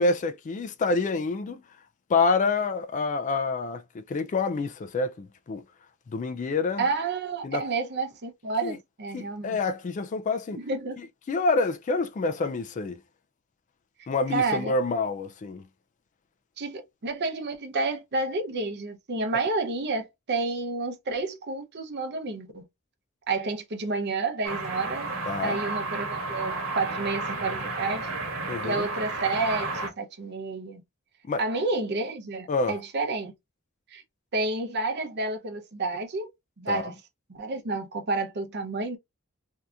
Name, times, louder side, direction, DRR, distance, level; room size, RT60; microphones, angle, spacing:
voice 1, 0.0-1.6 2.1-5.6 6.1-6.8 7.4-7.6 8.6-8.8 9.1-10.6 11.3-13.0 14.1-15.6 25.3-25.6 28.5-28.9 31.3-31.4 32.5-32.8 36.7-36.9, left 3 dB, 35° left, 0.3 m, -27 dB
voice 2, 6.8-9.6 10.5-11.0 14.3-14.7 16.6-22.6 23.3-25.1 25.4-28.1 28.6-30.8 31.4-33.3 33.9-34.0 34.3-36.3 36.6-36.9 37.3-39.0, right 3 dB, 55° right, 0.7 m, -30 dB
sound 1, 24.4-29.9, right 2 dB, 75° right, 1.1 m, -32 dB
2.7 x 2.4 x 3.3 m
head